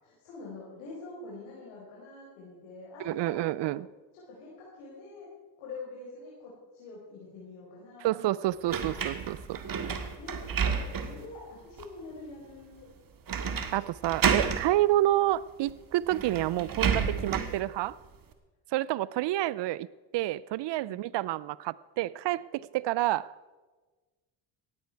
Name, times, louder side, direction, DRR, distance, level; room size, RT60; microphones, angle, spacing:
voice 1, 0.0-3.8 4.1-5.3 5.6-8.1 10.2-12.9 20.8-21.1, left 3 dB, 80° left, -5 dB, 4.8 m, -46 dB
voice 2, 3.0-3.9 8.0-9.6 13.7-18.0 18.7-19.9 20.1-23.3, right 15 dB, 55° right, 21 dB, 0.6 m, -29 dB
sound 1, 8.7-11.3 11.8-11.9 13.3-13.8 14.0-14.7 15.7-15.8 16.1-17.6, right 6 dB, 40° right, 2.1 m, -30 dB
18.0 x 14.5 x 4.7 m, 1.3 s
supercardioid pair, 70°, 50 cm